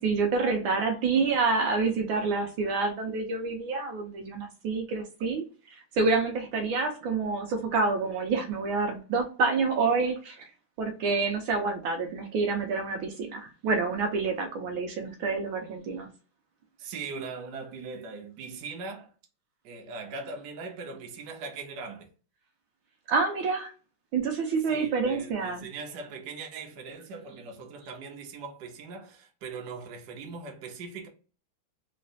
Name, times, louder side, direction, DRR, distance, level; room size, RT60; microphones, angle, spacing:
voice 1, 0.0-10.5 10.8-16.1 23.1-23.7 24.1-25.7, right 4 dB, 80° right, 1.5 m, -28 dB
voice 2, 16.8-19.1 19.6-22.1 24.7-31.1, right 4 dB, 60° right, 1.3 m, -40 dB
3.8 x 3.2 x 2.6 m
omnidirectional pair, 2.3 m